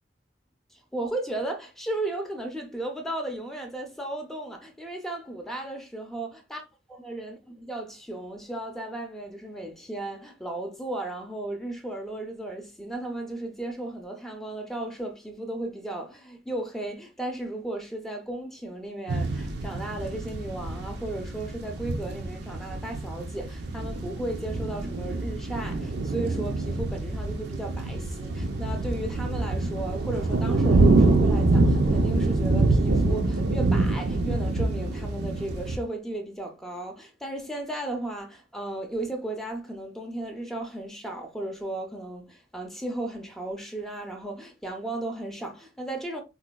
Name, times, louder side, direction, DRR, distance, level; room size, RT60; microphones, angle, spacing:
voice 1, 0.7-6.6 7.0-46.2, right 1 dB, ahead, 0.5 m, -35 dB
sound 1, 19.1-35.8, right 2 dB, 65° right, 0.5 m, -25 dB
4.0 x 2.1 x 2.2 m
head